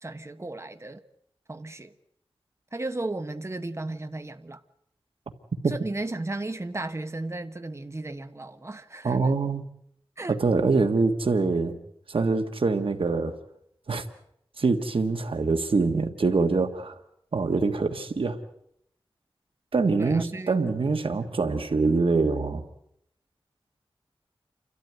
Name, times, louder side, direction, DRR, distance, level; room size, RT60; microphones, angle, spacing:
voice 1, 0.0-1.0 1.5-1.9 2.7-4.6 5.7-9.2 10.2-10.4 20.0-20.5 21.1-21.2, right 2 dB, 30° right, 1.3 m, -35 dB
voice 2, 9.0-9.6 10.3-11.8 12.1-13.4 13.9-14.0 14.6-17.0 17.3-18.4 19.7-22.6, right 4 dB, 75° right, 1.6 m, -24 dB
28.5 x 13.0 x 9.3 m
wide cardioid pair, 70°, 9 cm